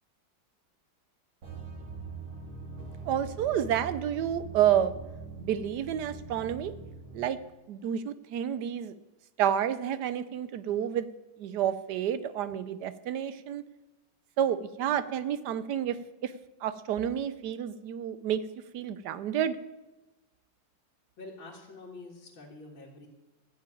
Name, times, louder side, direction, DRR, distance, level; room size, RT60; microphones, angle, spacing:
sound 1, 1.4-7.2, right 4 dB, 85° right, 2.8 m, -43 dB
voice 1, 3.0-4.9 5.4-6.7 7.1-7.4 7.7-8.9 9.4-11.1 11.4-13.6 14.4-16.0 16.2-16.3 16.6-18.4 18.7-19.6, right 10 dB, 70° right, 13 dB, 1.1 m, -29 dB
voice 2, 21.2-23.1, left 2 dB, 90° left, -4 dB, 2.6 m, -46 dB
14.0 x 5.7 x 9.0 m, 1.1 s
omnidirectional pair, 2.1 m